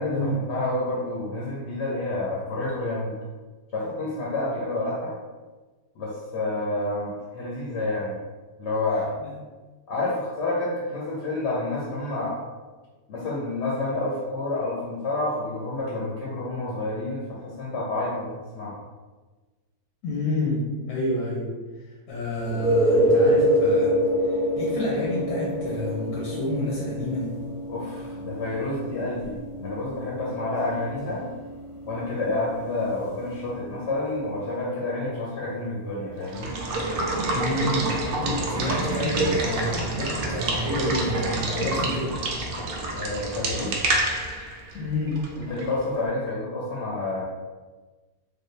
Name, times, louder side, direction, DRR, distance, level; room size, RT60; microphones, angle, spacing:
voice 1, 0.0-3.1 3.7-5.1 5.9-8.2 8.6-9.1 9.9-12.4 13.1-18.3 18.5-18.8 27.7-31.3 31.9-36.5 42.9-43.7 45.4-47.2, left 2 dB, 60° left, -5 dB, 0.8 m, -29 dB
voice 2, 20.0-21.5 22.1-24.0 24.3-27.3 37.3-42.2 44.7-45.2, left 1 dB, 90° left, -4 dB, 1.3 m, -29 dB
sound 1, 22.4-34.0 38.2-38.3, equal, 25° left, 0.8 m, -26 dB
Water / Water tap faucet / Liquid, 36.2-45.8, right 2 dB, 80° right, 0.5 m, -27 dB
3.3 x 2.2 x 3.1 m, 1.3 s
omnidirectional pair, 1.6 m